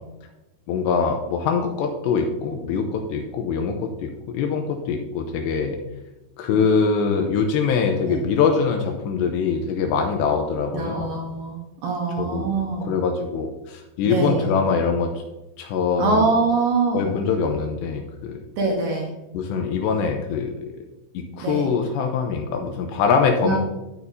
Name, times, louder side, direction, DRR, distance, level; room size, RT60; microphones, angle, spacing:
voice 1, 0.7-5.8 6.4-11.2 12.2-12.5 12.8-15.1 15.6-16.3 16.9-18.4 19.3-20.7 21.1-23.6, left 5 dB, 80° left, 3 dB, 2.7 m, -23 dB
voice 2, 10.7-13.0 14.0-14.5 16.0-17.2 18.6-19.2 21.4-21.7 23.4-23.6, right 3 dB, 80° right, 0 dB, 2.0 m, -24 dB
12.0 x 6.6 x 2.7 m, 1.0 s
omnidirectional pair, 5.4 m